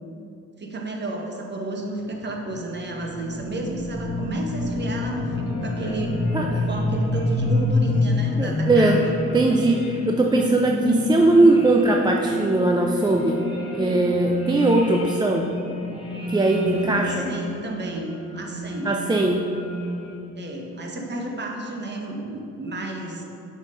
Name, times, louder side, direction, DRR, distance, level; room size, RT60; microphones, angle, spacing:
voice 1, 0.6-9.2 16.7-19.0 20.4-23.2, right 1 dB, 35° right, 1 dB, 1.2 m, -32 dB
sound 1, 2.1-20.5, left 2 dB, 20° left, 1.3 m, -28 dB
voice 2, 8.4-9.0 9.3-13.4 13.7-15.5 16.3-17.1 18.8-19.4, right 2 dB, 15° right, 1 dB, 0.4 m, -20 dB
6.7 x 4.7 x 5.1 m, 2.8 s
cardioid pair, 90°, 30 cm